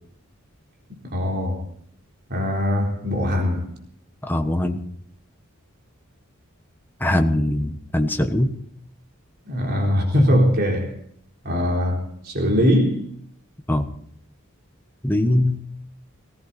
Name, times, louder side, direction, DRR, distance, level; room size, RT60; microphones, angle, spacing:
voice 1, 0.9-1.6 2.3-3.7 9.5-10.9 11.4-13.0, equal, 45° right, 3.8 m, -21 dB
voice 2, 4.2-4.8 7.0-8.5 13.7-13.9 15.0-15.6, left 1 dB, 10° left, 1.3 m, -21 dB
19.0 x 17.0 x 4.3 m
head